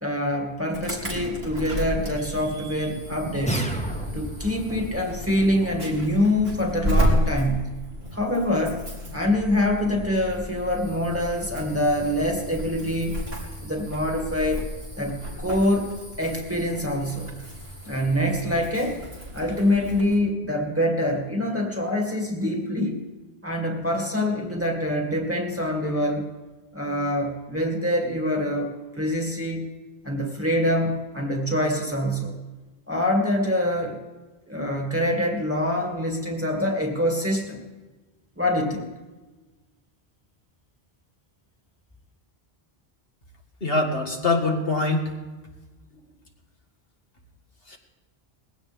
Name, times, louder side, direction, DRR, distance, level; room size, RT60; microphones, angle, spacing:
voice 1, 0.0-3.7 4.1-7.7 8.1-8.8 9.1-13.2 13.6-14.7 15.0-17.3 17.8-19.0 19.3-23.0 23.4-26.3 26.7-29.7 30.0-32.4 32.9-34.0 34.5-37.6 38.4-38.9, left 1 dB, 15° right, 1 dB, 2.1 m, -25 dB
Insect / Alarm, 0.7-20.2, equal, 65° right, 3.2 m, -32 dB
sound 1, 3.5-4.5, equal, 5° left, 1.5 m, -29 dB
voice 2, 43.6-45.1 47.7-47.8, left 2 dB, 65° left, 1 dB, 2.0 m, -23 dB
20.0 x 16.0 x 3.6 m, 1.2 s
omnidirectional pair, 1.1 m